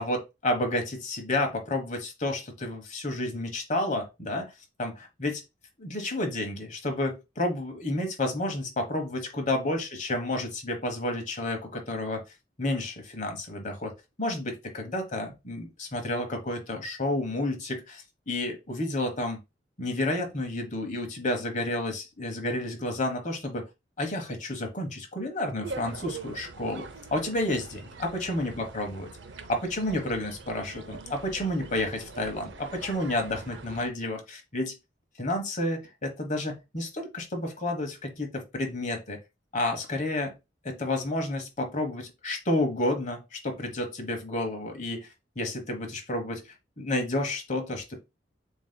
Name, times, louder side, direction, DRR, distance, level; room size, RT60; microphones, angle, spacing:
voice 1, 0.0-4.5 4.8-5.4 5.8-12.2 12.6-19.4 19.8-23.7 24.0-29.1 29.5-34.7 35.2-39.2 39.5-40.3 40.6-45.1 45.3-46.4 46.8-48.0, left 1 dB, 45° left, 1.2 m, -30 dB
sound 1, 25.6-33.9, right 4 dB, 80° right, 0.6 m, -43 dB
7.0 x 2.8 x 2.2 m
head